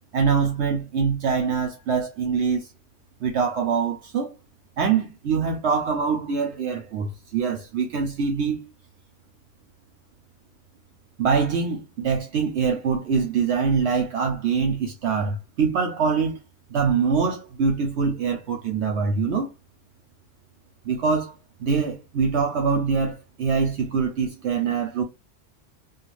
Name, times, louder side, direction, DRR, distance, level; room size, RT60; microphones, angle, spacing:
voice 1, 0.1-2.7 3.2-4.3 4.8-8.6 11.2-16.4 16.7-19.5 20.8-21.3 21.6-25.0, right 5 dB, 70° right, 0.9 m, -24 dB
3.0 x 2.7 x 2.4 m
omnidirectional pair, 1.3 m